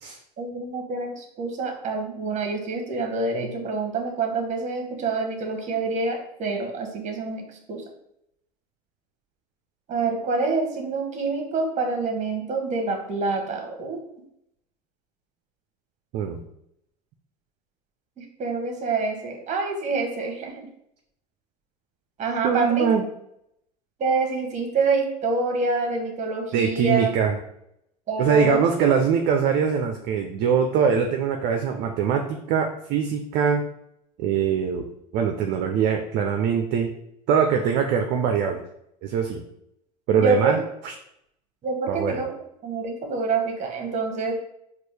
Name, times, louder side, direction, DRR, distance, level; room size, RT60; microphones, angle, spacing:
voice 1, 0.4-7.8 9.9-14.0 18.2-20.5 22.2-22.9 24.0-27.1 28.1-28.6 40.2-40.6 41.6-42.3 42.6-44.3, right 4 dB, 35° right, 3 dB, 1.1 m, -27 dB
voice 2, 16.1-16.4 22.4-23.0 26.5-27.4 28.2-33.6 34.2-34.9 35.1-36.9 37.3-38.6 39.0-39.4 40.1-40.6 40.8-40.9 41.9-42.2, right 7 dB, 50° right, 4 dB, 0.5 m, -22 dB
4.3 x 2.4 x 3.2 m, 0.77 s
hypercardioid pair, 85°, 21 cm